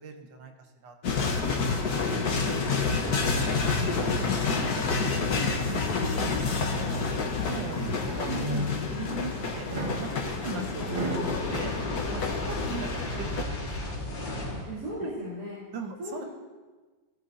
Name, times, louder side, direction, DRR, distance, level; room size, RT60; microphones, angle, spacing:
voice 1, 0.0-1.6 2.1-2.6 3.2-3.5 4.2-5.3 5.6-5.9 6.1-7.1 7.4-7.8 8.1-9.7 10.0-11.8 12.1-12.9 13.2-13.9 15.0-15.1 15.7-16.2, right 5 dB, 80° right, 5 dB, 1.7 m, -40 dB
sound 1, 1.0-13.4, left 4 dB, 60° left, 1.6 m, -29 dB
voice 2, 3.2-4.2 4.6-5.0 5.3-5.7 7.7-7.9 12.6-12.8 14.7-15.6 16.0-16.3, right 1 dB, 55° right, -9 dB, 4.0 m, -38 dB
sound 2, 6.4-6.9 7.4-9.1 9.6-11.4, right 1 dB, 30° right, 1.5 m, -35 dB
Fire, 11.1-14.8, left 1 dB, 85° left, 2.7 m, -34 dB
17.0 x 11.5 x 2.8 m, 1.3 s
omnidirectional pair, 2.0 m